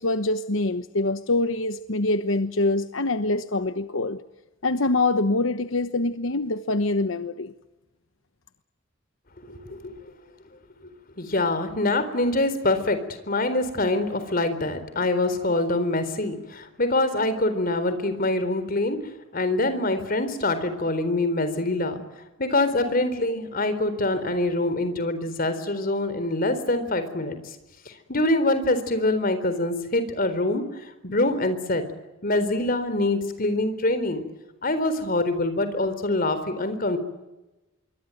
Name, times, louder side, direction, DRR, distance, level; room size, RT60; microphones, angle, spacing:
voice 1, 0.0-4.2 4.6-7.5, left 2 dB, 85° left, 10 dB, 1.1 m, -24 dB
voice 2, 9.4-10.0 10.8-10.9 11.2-22.0 22.4-27.6 27.9-31.8 32.2-34.2 34.6-37.0, left 2 dB, 45° left, 11 dB, 4.0 m, -25 dB
26.5 x 23.5 x 9.2 m, 1.0 s
head